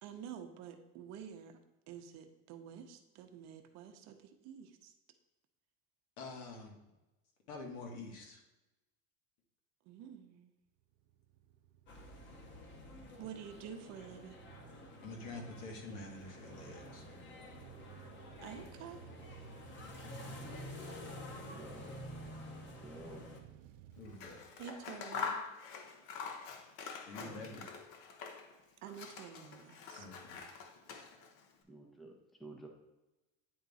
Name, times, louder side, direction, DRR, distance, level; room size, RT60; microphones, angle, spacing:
voice 1, 0.0-1.6 1.9-4.9 9.9-10.5 13.2-14.4 18.4-19.0 24.6-25.4 28.8-30.1, right 8 dB, 50° right, 6 dB, 0.8 m, -49 dB
voice 2, 6.2-6.8 7.5-8.4 15.0-17.1 24.0-24.4 27.0-27.6 30.0-30.5, left 2 dB, 80° left, 0 dB, 1.9 m, -47 dB
sound 1, 10.8-25.1, right 12 dB, 85° right, 0.6 m, -57 dB
sound 2, 11.9-23.4, left 2 dB, 35° left, 0.9 m, -50 dB
voice 3, 21.5-21.9 22.8-23.3 27.2-27.7 31.6-32.7, right 1 dB, ahead, 1 dB, 0.5 m, -52 dB
Scissors, 24.0-28.6 28.9-31.4, left 6 dB, 60° left, 1.0 m, -45 dB
9.5 x 3.6 x 4.0 m, 1.0 s
cardioid pair, 165°, 35 cm